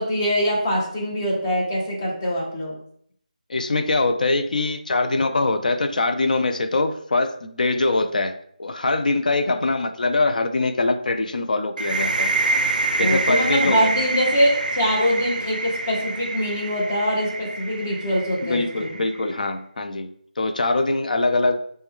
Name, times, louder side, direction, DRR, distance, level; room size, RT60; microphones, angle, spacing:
voice 1, 0.0-2.7 13.0-18.9, equal, 20° left, -3 dB, 0.7 m, -23 dB
voice 2, 3.5-8.3 8.6-12.3 13.0-13.9 18.4-20.1 20.4-21.6, left 2 dB, 70° left, 8 dB, 0.3 m, -23 dB
sound 1, 11.8-19.3, right 3 dB, 80° right, 0.3 m, -26 dB
3.0 x 2.1 x 3.4 m, 0.64 s
figure-of-eight pair, 170°, 5 cm